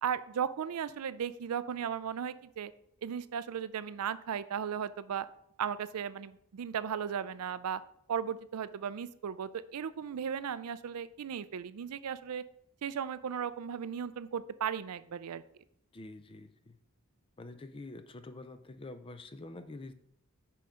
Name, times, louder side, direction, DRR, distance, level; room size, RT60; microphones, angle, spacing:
voice 1, 0.0-2.7 3.0-5.3 5.6-7.8 8.1-12.4 12.8-15.4, right 8 dB, 85° right, 15 dB, 0.4 m, -36 dB
voice 2, 15.9-16.8 17.4-19.9, left 2 dB, 25° left, 11 dB, 0.4 m, -46 dB
5.7 x 5.2 x 5.0 m, 0.71 s
head